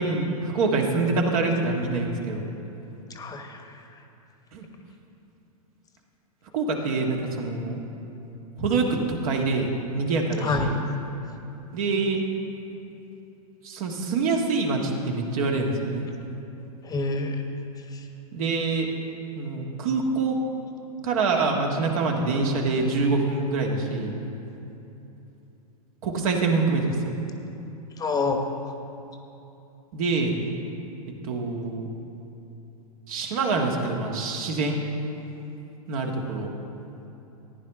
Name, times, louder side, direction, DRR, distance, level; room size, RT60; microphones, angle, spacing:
voice 1, 0.0-2.5 4.5-4.6 6.5-7.8 8.6-10.8 11.7-12.2 13.6-16.1 18.3-18.9 19.3-20.3 21.0-24.1 26.0-27.2 29.9-30.3 31.2-31.9 33.1-34.8 35.9-36.5, right 3 dB, 65° right, 1 dB, 1.7 m, -25 dB
voice 2, 3.1-3.6 10.4-10.7 16.8-17.4 17.9-18.0 28.0-28.4, left 3 dB, 20° left, 5 dB, 1.0 m, -27 dB
14.5 x 9.9 x 3.6 m, 2.9 s
hypercardioid pair, 110°, 19 cm